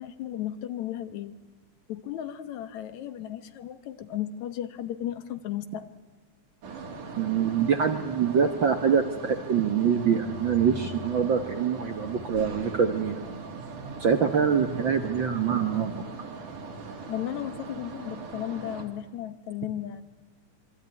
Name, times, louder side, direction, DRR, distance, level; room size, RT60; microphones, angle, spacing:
voice 1, 0.0-1.3 1.9-5.9 17.1-20.0, left 11 dB, 70° left, 12 dB, 2.4 m, -35 dB
sound 1, 6.6-18.9, right 3 dB, 85° right, 4.4 m, -40 dB
voice 2, 7.2-13.2 14.0-16.0, right 7 dB, 55° right, 7 dB, 1.4 m, -25 dB
26.0 x 23.5 x 9.7 m, 1.3 s
omnidirectional pair, 3.6 m